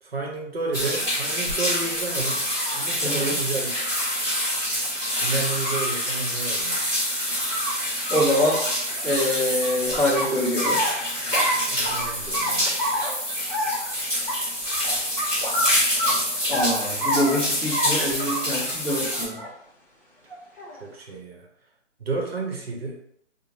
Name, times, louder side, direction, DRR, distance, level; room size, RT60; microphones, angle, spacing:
voice 1, 0.0-2.5 2.7-3.7 5.2-6.8 11.7-12.8 20.8-21.5 22.0-23.0, right 3 dB, 55° right, 0 dB, 0.9 m, -31 dB
sound 1, 0.7-19.2, equal, 10° right, 1.4 m, -26 dB
sound 2, 1.5-1.6 2.2-2.8 3.9-4.0 4.3-4.4 4.8-4.9 5.5-5.9 7.1-7.7 8.0-8.2 8.5-9.7 10.1-10.9 11.3-11.6 11.9-12.1 12.3-13.1 13.5-13.9 14.3-14.4 14.7-14.8 15.2-15.3 15.5-15.7 16.0-16.7 17.0-17.4 17.7-17.9 18.2-18.6 19.0-19.5 20.3-20.8, equal, 45° left, 1.0 m, -28 dB
voice 2, 3.0-3.4 8.1-8.6 9.0-10.8 16.5-19.4, left 1 dB, 10° left, -16 dB, 1.0 m, -25 dB
3.3 x 2.2 x 2.6 m, 0.71 s
hypercardioid pair, 165°, 37 cm